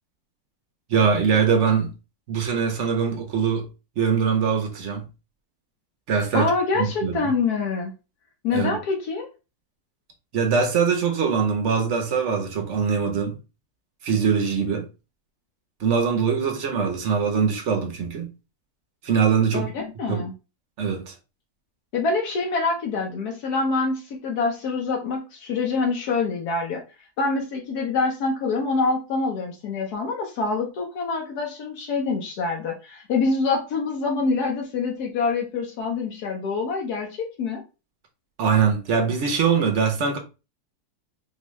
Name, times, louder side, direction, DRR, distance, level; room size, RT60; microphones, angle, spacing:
voice 1, 0.9-1.9 2.3-3.7 4.0-5.0 6.1-6.5 6.8-7.3 8.5-8.8 10.3-13.4 14.0-14.9 15.8-18.3 19.0-19.7 20.1-20.2 20.8-21.1 38.4-40.2, right 6 dB, 55° right, 1.0 m, -22 dB
voice 2, 6.3-7.9 8.4-9.3 19.5-20.3 21.9-26.8 27.2-37.6, left 4 dB, 80° left, 1.3 m, -25 dB
4.4 x 2.3 x 3.1 m
omnidirectional pair, 1.6 m